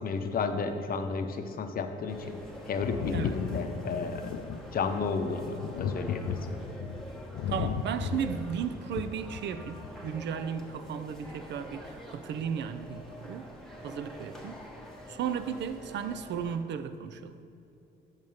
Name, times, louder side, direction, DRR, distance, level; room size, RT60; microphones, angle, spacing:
voice 1, 0.0-2.4 2.7-4.3 4.7-6.6, left 4 dB, 45° left, 6 dB, 0.7 m, -32 dB
sound 1, 2.1-16.6, equal, ahead, 1.1 m, -46 dB
Thunder, 2.8-10.1 11.3-11.4, left 6 dB, 85° left, 0.4 m, -35 dB
voice 2, 7.5-13.5 13.8-14.6 15.1-17.4, right 7 dB, 65° right, 11 dB, 0.5 m, -35 dB
6.5 x 5.4 x 6.5 m, 2.6 s
cardioid pair, 90°, 20 cm